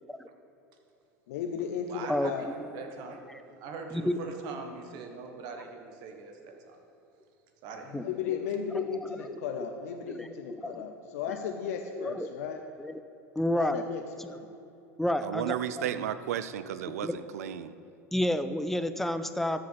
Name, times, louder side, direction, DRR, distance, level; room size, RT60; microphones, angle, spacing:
voice 1, 1.3-2.5 7.9-12.6 13.5-14.5, left 7 dB, 70° left, 5 dB, 0.6 m, -35 dB
voice 2, 1.9-3.2 3.5-6.8 7.6-8.1, right 4 dB, 55° right, 4 dB, 1.3 m, -42 dB
voice 3, 7.9-8.4 8.7-9.4 10.1-10.8 12.0-12.3 12.8-12.9 13.4-13.8 14.2-14.3 15.0-15.9 16.9-17.2 18.1-19.7, left 1 dB, 5° left, 10 dB, 0.5 m, -31 dB
voice 4, 15.2-17.7, right 10 dB, 80° right, 13 dB, 0.4 m, -33 dB
13.0 x 4.8 x 5.7 m, 2.8 s
hypercardioid pair, 85°, 8 cm